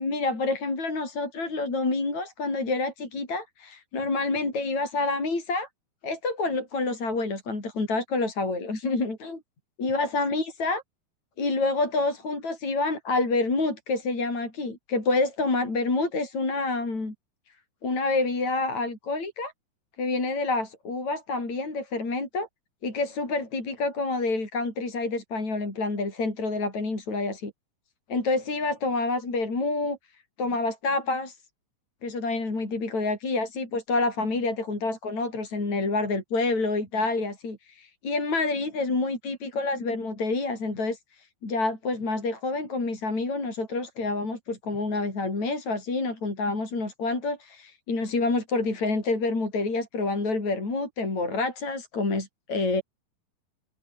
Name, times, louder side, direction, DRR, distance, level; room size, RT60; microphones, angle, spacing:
voice 1, 0.0-5.7 6.0-9.4 9.8-10.8 11.4-17.1 17.8-19.5 20.0-22.5 22.8-27.5 28.1-30.0 30.4-31.4 32.0-52.8, left 3 dB, 50° left, 8.7 m, -28 dB
omnidirectional pair, 4.1 m